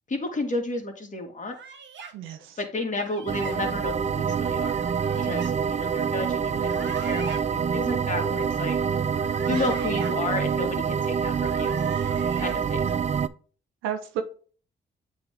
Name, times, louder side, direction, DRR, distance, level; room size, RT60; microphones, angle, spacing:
voice 1, 0.1-1.5 2.6-4.8 5.2-8.8 9.5-11.8 12.4-12.9, left 2 dB, 40° left, 3 dB, 2.1 m, -32 dB
sound 1, 1.5-2.1 3.0-3.6 4.7-5.5 6.5-7.4 9.1-10.1 11.3-12.6, right 5 dB, 65° right, 1.3 m, -41 dB
voice 2, 2.1-2.6 9.5-9.6 13.8-14.2, right 9 dB, 90° right, 7 dB, 0.8 m, -32 dB
sound 2, 3.3-13.3, right 6 dB, 35° right, 0.5 m, -26 dB
7.9 x 3.6 x 3.5 m, 0.41 s
supercardioid pair, 55°, 20 cm